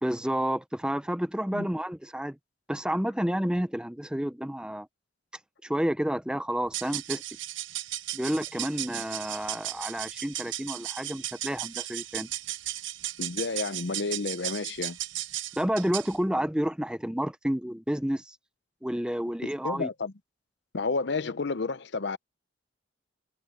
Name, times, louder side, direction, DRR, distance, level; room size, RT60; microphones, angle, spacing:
voice 1, 0.0-2.4 2.7-4.9 5.6-7.2 8.1-12.3 15.6-18.4 18.8-19.9, equal, 5° right, 0.6 m, -30 dB
sound 1, 6.6-16.2, right 14 dB, 80° right, 0.7 m, -36 dB
voice 2, 13.2-15.0 19.6-20.1 20.7-22.2, left 4 dB, 60° left, 0.7 m, -31 dB
head